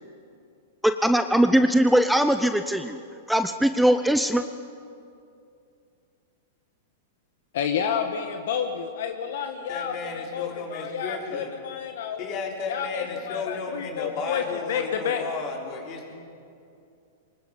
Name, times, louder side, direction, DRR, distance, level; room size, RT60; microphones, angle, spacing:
voice 1, 1.0-3.0 3.3-4.4, right 1 dB, ahead, 9 dB, 0.6 m, -20 dB
voice 2, 7.5-12.2 12.7-15.2, left 7 dB, 70° left, 6 dB, 1.4 m, -30 dB
voice 3, 9.7-11.5 12.2-16.1, left 4 dB, 40° left, 0 dB, 4.1 m, -34 dB
24.0 x 20.5 x 5.4 m, 2.5 s
hypercardioid pair, 135°, 0 cm